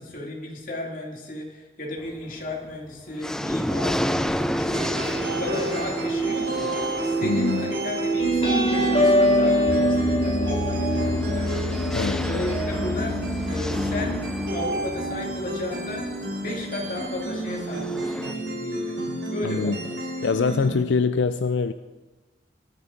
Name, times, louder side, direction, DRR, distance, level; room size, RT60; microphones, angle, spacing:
voice 1, 0.0-6.7 7.0-11.5 12.0-13.2 13.5-16.1 16.4-19.0 19.3-20.0, left 1 dB, 50° left, -1 dB, 2.5 m, -34 dB
sound 1, 2.0-2.5 2.9-18.3, equal, 5° left, 0.3 m, -32 dB
sound 2, 4.7-20.7, right 2 dB, 80° right, 4.1 m, -30 dB
voice 2, 7.2-7.7 11.9-12.2 19.1-19.8 20.2-21.7, left 5 dB, 90° left, 10 dB, 0.4 m, -24 dB
sound 3, 8.2-15.3, equal, 30° left, 3.4 m, -24 dB
21.5 x 9.4 x 3.9 m, 1.2 s
head